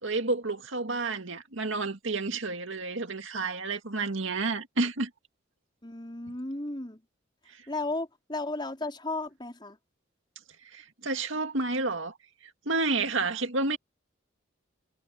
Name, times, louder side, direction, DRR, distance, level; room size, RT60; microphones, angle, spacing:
voice 1, 0.0-5.1 10.7-12.1 12.7-13.8, right 3 dB, 75° right, 2.0 m, -30 dB
voice 2, 5.8-7.0 7.7-9.8, left 2 dB, 25° left, 4.5 m, -34 dB
head